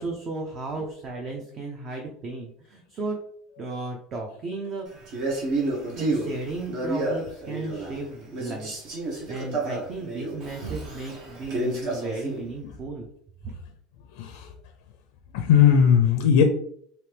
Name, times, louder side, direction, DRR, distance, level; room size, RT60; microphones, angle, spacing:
voice 1, 0.0-3.2 3.6-4.9 6.0-8.9 9.3-13.1 13.4-13.5, right 3 dB, 35° right, 1 dB, 0.6 m, -34 dB
Male speech man speaking, 5.1-8.0 8.3-12.4, right 2 dB, 60° right, 1.2 m, -30 dB
voice 2, 14.2-14.5 15.3-16.4, left 8 dB, 80° left, 5 dB, 0.4 m, -18 dB
3.1 x 2.9 x 3.3 m, 0.65 s
cardioid pair, 140°, 0 cm